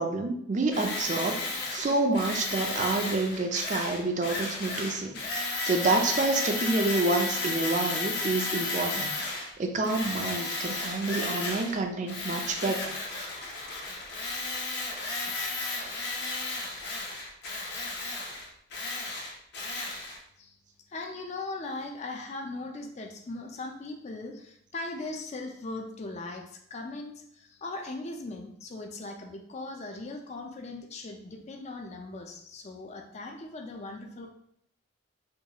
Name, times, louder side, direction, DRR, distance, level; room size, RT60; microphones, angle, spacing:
voice 1, 0.0-5.2 5.6-12.9, right 2 dB, 40° right, 4 dB, 0.4 m, -28 dB
Tools, 0.7-9.5 9.8-11.8 12.1-20.2, left 3 dB, 55° left, 0.7 m, -33 dB
voice 2, 20.9-34.3, left 2 dB, 35° left, 3 dB, 0.4 m, -39 dB
4.4 x 2.3 x 2.8 m, 0.71 s
head